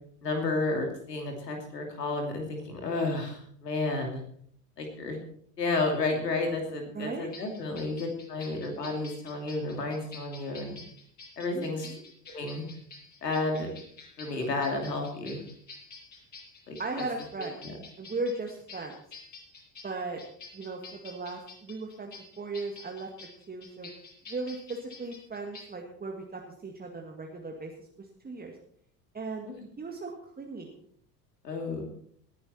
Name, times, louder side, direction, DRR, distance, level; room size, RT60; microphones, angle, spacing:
voice 1, 0.2-4.2 4.8-5.2 5.6-10.8 11.4-11.9 12.3-12.6 13.2-13.7 14.2-15.4 16.7-16.8 17.6-17.8 29.4-29.5 31.4-31.8, left 3 dB, 80° left, 3 dB, 2.9 m, -31 dB
voice 2, 6.9-7.3 11.5-12.0 16.8-17.6 18.0-18.9 19.8-20.2 20.5-22.1 22.4-23.1 23.5-23.9 24.3-28.6 29.1-29.5 29.8-30.8, right 3 dB, 20° right, 1 dB, 2.0 m, -37 dB
sound 1, 7.3-25.6, left 3 dB, 35° left, 7.1 m, -49 dB
19.5 x 10.0 x 4.3 m, 0.63 s
figure-of-eight pair, 65°, 48 cm